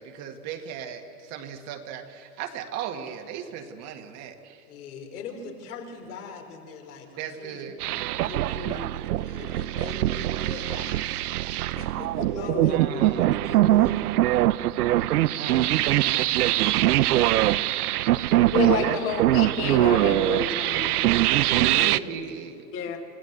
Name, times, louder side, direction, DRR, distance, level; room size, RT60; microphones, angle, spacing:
voice 1, 0.0-4.6 7.2-7.8 12.7-13.2 15.3-17.8 18.2-19.0 21.5-23.0, right 8 dB, 35° right, 6 dB, 1.7 m, -37 dB
voice 2, 4.7-7.9 8.2-11.2 11.5-14.1 17.9-18.1 21.4-22.3 22.9-23.0, left 4 dB, 75° left, 2 dB, 4.4 m, -41 dB
sound 1, 7.8-22.0, right 15 dB, 80° right, 0.7 m, -23 dB
voice 3, 12.4-12.7 18.5-21.0 21.6-21.7 22.7-23.0, left 7 dB, 30° left, 4 dB, 1.8 m, -29 dB
29.0 x 15.5 x 7.9 m, 2.4 s
hypercardioid pair, 140°, 45 cm